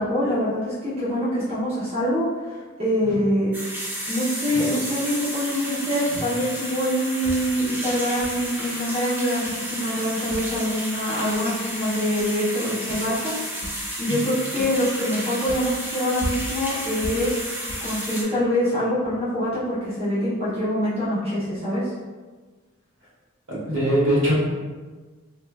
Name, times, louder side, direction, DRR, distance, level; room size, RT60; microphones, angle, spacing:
voice 1, 0.0-21.9, equal, 30° right, -11 dB, 0.8 m, -25 dB
sound 1, 3.0-3.4 4.5-4.9 6.1-6.4 7.2-7.5 8.2-8.4 9.4-9.6 10.3-10.4 11.3-11.4 12.2-12.3 12.9-13.0 13.6-13.8 14.6-14.7 15.5-15.6 16.2-16.6 17.0-17.3 17.7-17.9, equal, 50° left, 0.8 m, -34 dB
sound 2, 3.5-18.2, equal, 10° right, 0.4 m, -32 dB
voice 2, 23.5-24.3, right 1 dB, 70° right, -8 dB, 1.4 m, -21 dB
3.3 x 2.6 x 2.3 m, 1.4 s
head